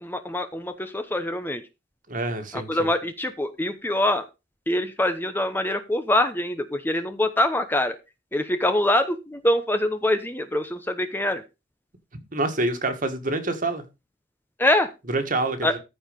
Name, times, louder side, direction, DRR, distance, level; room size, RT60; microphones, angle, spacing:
voice 1, 0.0-1.6 2.5-4.2 4.7-8.0 8.3-11.4 14.6-14.9 15.6-15.8, left 1 dB, 10° left, 0.9 m, -24 dB
voice 2, 2.1-2.9 12.3-13.8 15.1-15.8, right 2 dB, 45° right, 1.9 m, -27 dB
14.0 x 4.8 x 5.2 m
head